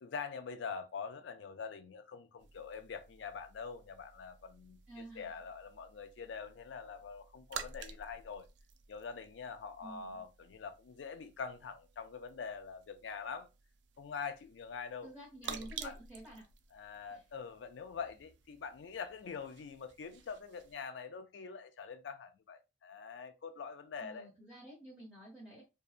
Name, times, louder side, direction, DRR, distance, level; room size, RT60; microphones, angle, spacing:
voice 1, 0.0-8.5 8.9-13.5 14.0-15.1 15.4-16.0 16.7-24.3, left 5 dB, 85° left, 0.4 m, -44 dB
sound 1, 2.4-20.8, right 7 dB, 75° right, 0.3 m, -52 dB
voice 2, 4.9-5.3 9.8-10.2 15.0-16.4 17.1-17.2 24.0-25.6, right 1 dB, 5° right, 1.0 m, -50 dB
2.7 x 2.2 x 2.4 m
head